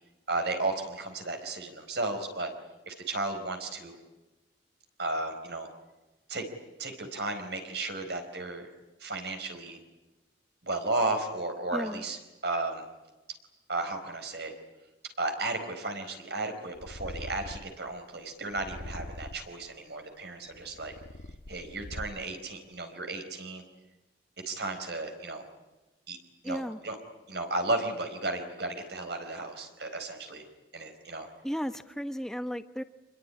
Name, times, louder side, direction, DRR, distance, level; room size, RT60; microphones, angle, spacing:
voice 1, 0.3-2.5 2.9-4.0 5.0-5.7 6.3-6.4 6.8-8.7 9.0-9.8 10.6-12.8 13.7-14.5 15.2-20.9 21.5-23.6 24.5-25.4 26.1-26.2 26.4-27.0 27.3-30.5 30.7-31.3, right 2 dB, 65° right, 5 dB, 4.5 m, -34 dB
voice 2, 11.7-12.0 26.4-26.8 31.4-32.8, equal, 5° left, 10 dB, 1.1 m, -34 dB
Purr, 16.8-17.8 18.5-19.6 20.3-22.4, left 1 dB, 85° left, 1.4 m, -43 dB
26.5 x 21.5 x 9.8 m, 1.1 s
head